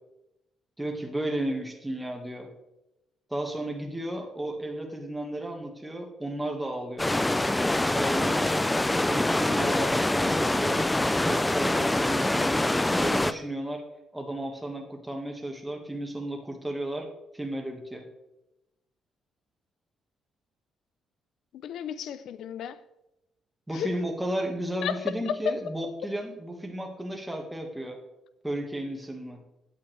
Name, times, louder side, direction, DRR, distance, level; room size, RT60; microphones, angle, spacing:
voice 1, 0.8-2.5 3.3-7.1 7.9-10.9 11.2-13.8 14.1-17.1 17.3-18.1 23.7-28.0 28.4-29.4, right 1 dB, 5° right, 2 dB, 1.7 m, -33 dB
sound 1, 7.0-13.3, left 1 dB, 10° left, 0.4 m, -25 dB
voice 2, 21.6-22.8 23.7-23.9 24.8-25.6, left 8 dB, 75° left, 15 dB, 0.5 m, -32 dB
9.1 x 8.4 x 3.3 m, 0.91 s
cardioid pair, 90°, 0 cm